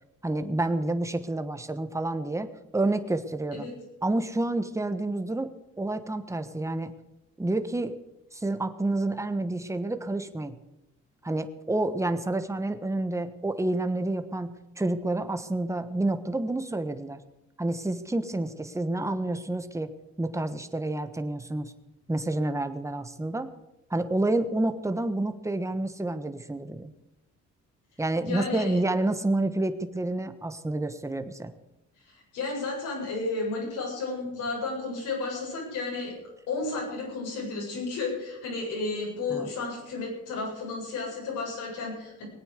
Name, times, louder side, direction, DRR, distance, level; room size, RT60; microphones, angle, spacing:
voice 1, 0.2-2.5 2.7-3.7 4.0-5.5 5.8-6.9 7.4-7.9 8.3-10.5 11.2-17.2 17.6-19.9 20.2-21.7 22.1-23.5 23.9-26.9 28.0-31.5 39.3-39.5, right 2 dB, 10° right, 9 dB, 1.2 m, -29 dB
voice 2, 28.3-28.8 32.1-36.1 36.5-42.2, left 3 dB, 85° left, -3 dB, 7.9 m, -32 dB
20.0 x 9.0 x 6.7 m, 0.93 s
cardioid pair, 90°, 30 cm